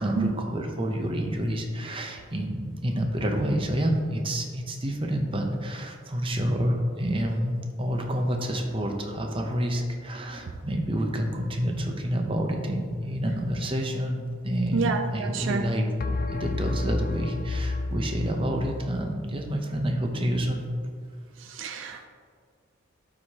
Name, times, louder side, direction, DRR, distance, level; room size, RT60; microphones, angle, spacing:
voice 1, 0.0-20.6 21.9-22.0, equal, 25° right, 3 dB, 0.7 m, -28 dB
sound 1, 8.6-9.5 16.0-19.0, left 3 dB, 45° left, 0.4 m, -31 dB
voice 2, 14.7-15.6 21.4-22.1, right 4 dB, 65° right, 6 dB, 0.4 m, -29 dB
12.0 x 4.8 x 2.8 m, 2.1 s
head